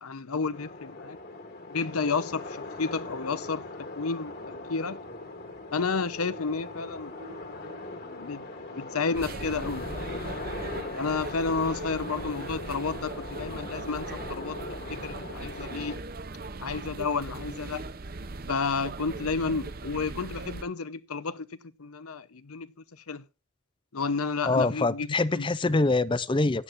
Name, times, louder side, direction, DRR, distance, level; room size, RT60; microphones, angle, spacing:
voice 1, 0.0-1.2 1.7-4.3 4.7-5.0 5.7-7.1 8.2-8.4 8.8-9.9 10.9-14.6 15.0-16.0 16.6-17.8 18.5-21.5 21.8-22.7 23.1-23.2 23.9-25.5, left 4 dB, 85° left, 0.9 m, -31 dB
sound 1, 0.5-16.0, left 2 dB, 45° left, 1.8 m, -40 dB
sound 2, 4.3-19.2, right 1 dB, 85° right, 4.1 m, -55 dB
sound 3, 9.1-20.6, right 3 dB, 40° right, 0.7 m, -39 dB
voice 2, 24.4-26.6, left 3 dB, 20° left, 0.5 m, -25 dB
16.0 x 11.0 x 2.6 m
head